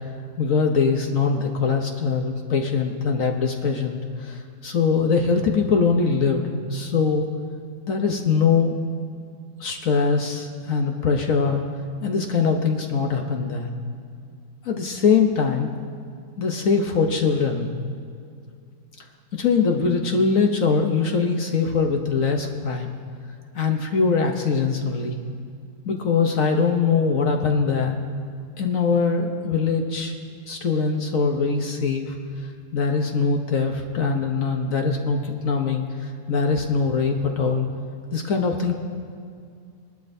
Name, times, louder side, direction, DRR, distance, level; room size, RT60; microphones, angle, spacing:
voice 1, 0.4-7.3 7.9-8.8 9.6-11.6 12.0-13.7 14.6-15.7 16.4-17.7 19.3-22.9 23.5-25.1 25.8-28.0 28.6-30.1 30.5-32.2 32.7-37.7 38.1-38.7, left 5 dB, 55° left, 3 dB, 1.1 m, -22 dB
21.5 x 11.5 x 2.7 m, 2.3 s
omnidirectional pair, 1.9 m